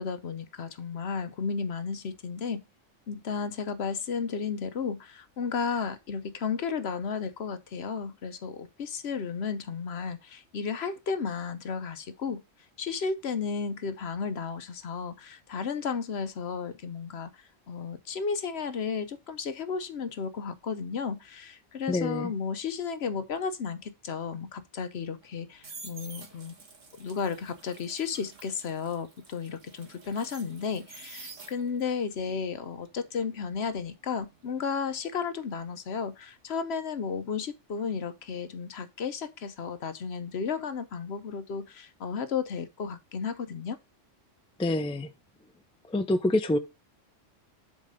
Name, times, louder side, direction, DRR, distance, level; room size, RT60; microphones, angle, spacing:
voice 1, 0.0-2.6 3.1-12.4 12.8-26.5 27.0-43.8, left 5 dB, 60° left, 1.0 m, -33 dB
voice 2, 21.9-22.3 44.6-45.1 45.8-46.6, left 1 dB, 5° left, 0.4 m, -26 dB
sound 1, 25.2-31.9 32.3-35.2 35.4-35.8, right 4 dB, 75° right, 1.8 m, -49 dB
7.5 x 4.1 x 5.1 m
omnidirectional pair, 1.3 m